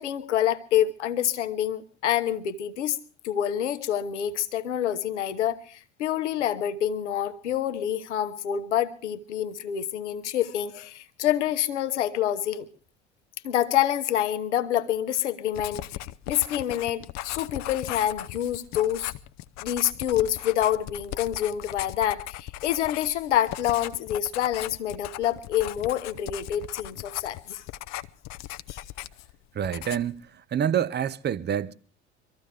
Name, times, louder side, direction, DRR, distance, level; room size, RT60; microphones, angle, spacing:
voice 1, 0.0-3.0 3.2-12.7 13.4-15.8 16.3-19.1 19.6-27.6 28.7-28.8, left 11 dB, 80° left, 1.0 m, -27 dB
Writing, 15.5-29.3 29.6-30.2, left 15 dB, 50° left, 0.7 m, -38 dB
voice 2, 29.5-31.7, right 9 dB, 30° right, 0.7 m, -27 dB
24.5 x 14.0 x 3.4 m
figure-of-eight pair, 60°, 35 cm